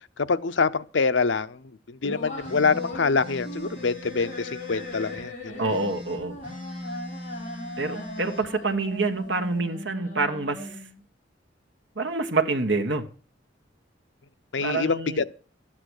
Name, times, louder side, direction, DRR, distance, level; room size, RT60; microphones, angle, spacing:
voice 1, 0.2-5.3 14.5-15.3, left 4 dB, 80° left, 0.7 m, -25 dB
sound 1, 2.0-11.0, left 2 dB, 40° left, 4.2 m, -38 dB
sound 2, 2.4-5.2 5.6-8.5, equal, 30° right, 4.8 m, -41 dB
voice 2, 5.6-6.4 7.8-10.8 11.9-13.1 14.6-15.2, right 3 dB, 70° right, 1.6 m, -27 dB
13.0 x 8.8 x 6.5 m
head